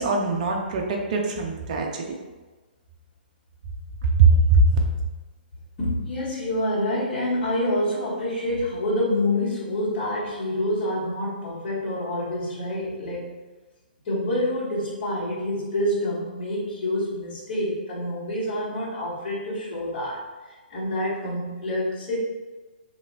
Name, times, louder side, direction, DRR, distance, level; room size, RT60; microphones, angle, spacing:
voice 1, 0.0-2.2 4.2-4.8, right 3 dB, 50° right, 0 dB, 0.5 m, -20 dB
voice 2, 5.8-13.3 14.0-20.3 20.7-22.2, left 1 dB, 40° left, -12 dB, 1.4 m, -27 dB
2.8 x 2.7 x 2.8 m, 1.2 s
figure-of-eight pair, 125°, 5 cm